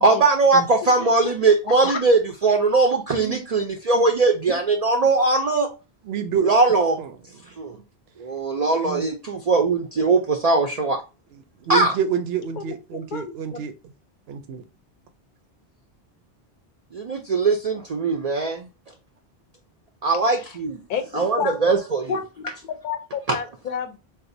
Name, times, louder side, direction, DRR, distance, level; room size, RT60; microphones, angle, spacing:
voice 1, 0.0-5.7 6.4-7.0 7.6-7.8 8.2-11.0 11.7-12.0 16.9-18.7 20.0-20.8 21.1-22.2 23.3-23.4, right 3 dB, 50° right, 0.5 m, -20 dB
voice 2, 1.0-1.3 1.8-2.0 12.5-12.8 13.1-13.6 20.4-20.5 20.9-21.7 22.1-24.0, left 7 dB, 55° left, 0.6 m, -31 dB
voice 3, 6.1-6.5 7.0-7.1 8.8-9.1 11.6-13.7 14.3-14.6, right 7 dB, 70° right, 0.8 m, -27 dB
3.9 x 2.4 x 2.6 m
omnidirectional pair, 1.1 m